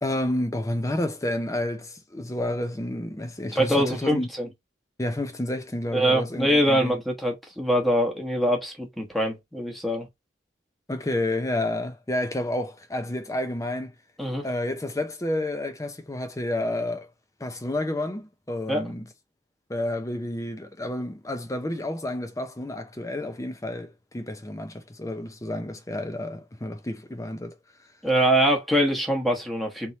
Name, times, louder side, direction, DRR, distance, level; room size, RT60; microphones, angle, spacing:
voice 1, 0.0-4.3 5.0-7.0 10.9-13.9 14.4-17.1 17.4-19.1 19.7-27.6, left 1 dB, 15° left, 0.6 m, -30 dB
voice 2, 3.5-4.5 5.9-10.1 14.2-14.5 18.7-18.9 28.0-29.9, equal, ahead, 1.2 m, -23 dB
3.6 x 3.0 x 4.0 m
head